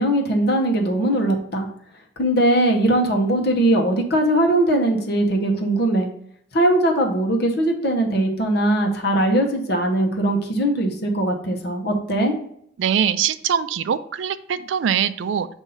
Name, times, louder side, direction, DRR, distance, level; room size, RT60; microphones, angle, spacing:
voice 1, 0.0-1.7 2.2-6.1 6.5-12.3, right 1 dB, 55° left, 2 dB, 1.0 m, -20 dB
voice 2, 12.8-15.5, right 8 dB, 75° right, 13 dB, 0.3 m, -22 dB
7.0 x 2.7 x 5.5 m, 0.69 s
head